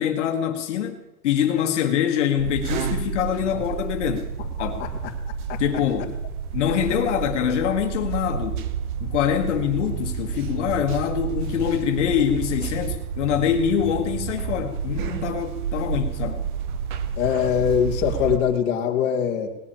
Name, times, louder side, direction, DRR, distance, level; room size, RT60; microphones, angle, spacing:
voice 1, 0.0-4.3 4.6-4.8 5.6-6.2 6.5-8.6 9.0-16.5, left 9 dB, 50° left, 6 dB, 1.6 m, -24 dB
sound 1, 2.4-18.4, right 7 dB, 35° right, 0.9 m, -30 dB
voice 2, 17.2-19.5, left 8 dB, 25° left, 0 dB, 1.8 m, -22 dB
18.5 x 8.3 x 8.7 m, 0.97 s
supercardioid pair, 165°, 44 cm